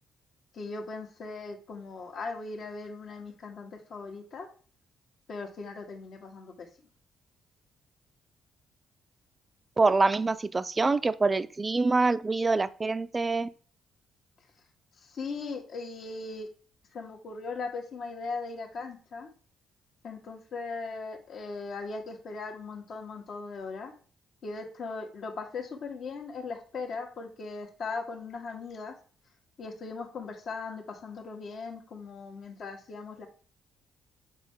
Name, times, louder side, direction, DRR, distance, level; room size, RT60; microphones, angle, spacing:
voice 1, 0.5-4.5 5.3-6.7 15.0-16.5 16.9-19.3 20.0-23.9 24.4-28.9 29.6-33.3, left 4 dB, 60° left, 3 dB, 1.6 m, -39 dB
voice 2, 9.8-13.5, right 3 dB, 25° right, 14 dB, 0.5 m, -25 dB
7.3 x 4.3 x 3.7 m, 0.42 s
cardioid pair, 90°, 0 cm